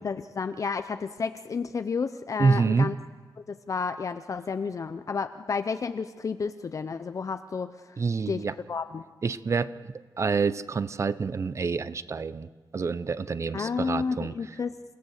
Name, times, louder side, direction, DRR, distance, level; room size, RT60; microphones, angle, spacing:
voice 1, 0.0-2.9 3.5-7.7 8.3-9.0 13.5-14.9, left 5 dB, 45° left, 9 dB, 0.7 m, -31 dB
voice 2, 2.4-2.9 8.0-8.5 9.2-14.3, right 4 dB, 40° right, 15 dB, 0.7 m, -27 dB
29.0 x 17.5 x 6.6 m, 1.5 s
wide cardioid pair, 135°, 8 cm